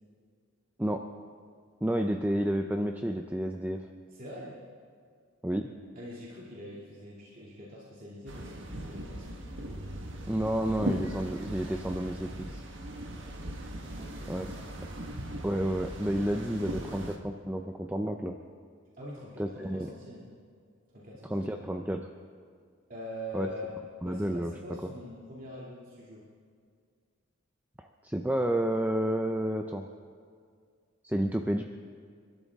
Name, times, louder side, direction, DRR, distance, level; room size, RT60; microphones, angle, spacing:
voice 1, 1.8-3.9 5.4-5.7 10.3-12.6 14.3-14.5 15.4-18.4 19.4-19.9 21.3-22.1 23.3-23.5 24.0-24.5 27.8-29.8 31.0-31.6, right 1 dB, 10° right, 4 dB, 0.5 m, -30 dB
voice 2, 4.1-4.6 5.9-9.4 13.1-14.3 16.6-17.0 19.0-20.3 20.9-21.5 22.9-23.7 24.0-26.2, equal, 40° right, -6 dB, 2.4 m, -44 dB
sound 1, 8.3-17.2, right 1 dB, 65° right, 1.4 m, -39 dB
29.0 x 12.5 x 3.6 m, 2.1 s
head